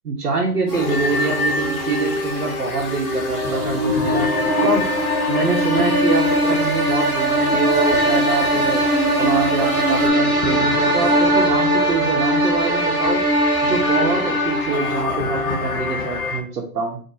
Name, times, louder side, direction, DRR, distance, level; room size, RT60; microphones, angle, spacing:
voice 1, 0.0-4.3 4.6-4.9 5.3-8.8 9.2-13.2 13.6-17.0, right 4 dB, 80° right, -3 dB, 1.3 m, -24 dB
sound 1, 0.7-16.4, left 4 dB, 65° left, 1.0 m, -26 dB
sound 2, 0.7-10.1, equal, 40° right, 1.5 m, -27 dB
sound 3, 4.1-15.1, right 1 dB, 10° right, 1.2 m, -21 dB
5.1 x 2.9 x 2.8 m, 0.43 s
hypercardioid pair, 155°, 46 cm